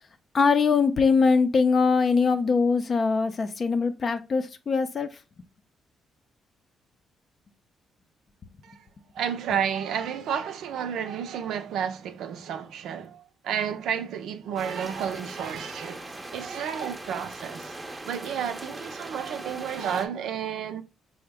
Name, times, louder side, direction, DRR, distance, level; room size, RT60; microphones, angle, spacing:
voice 1, 0.3-5.2, left 4 dB, 45° left, 0.5 m, -22 dB
voice 2, 9.1-16.0 16.3-17.8 18.1-20.8, right 8 dB, 80° right, 0.5 m, -31 dB
sound 1, 14.6-20.1, right 2 dB, 20° right, 0.6 m, -40 dB
4.8 x 2.1 x 3.4 m
cardioid pair, 90°, 0 cm